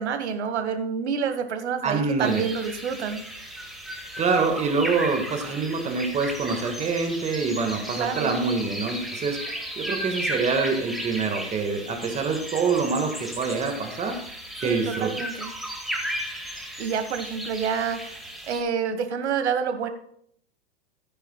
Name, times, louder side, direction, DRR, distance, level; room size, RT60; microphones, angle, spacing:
voice 1, 0.0-3.2 7.9-8.4 14.6-15.5 16.8-18.1 18.5-19.9, right 6 dB, 70° right, 9 dB, 1.6 m, -28 dB
voice 2, 1.8-2.4 4.2-14.2 14.6-15.1, right 4 dB, 20° right, 4 dB, 1.7 m, -26 dB
sound 1, 2.2-18.6, right 1 dB, ahead, 2.0 m, -35 dB
13.5 x 9.8 x 2.3 m, 0.65 s
hypercardioid pair, 115°, 35 cm